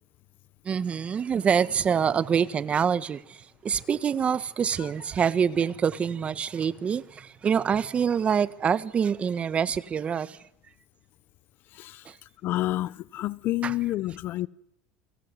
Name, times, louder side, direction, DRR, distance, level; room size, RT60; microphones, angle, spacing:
voice 1, 0.6-10.4 12.0-12.2 13.6-13.7, right 7 dB, 30° right, 1.5 m, -26 dB
voice 2, 11.7-12.1 12.4-14.5, left 16 dB, 50° left, 1.0 m, -29 dB
29.0 x 23.5 x 8.2 m
supercardioid pair, 110°, 4 cm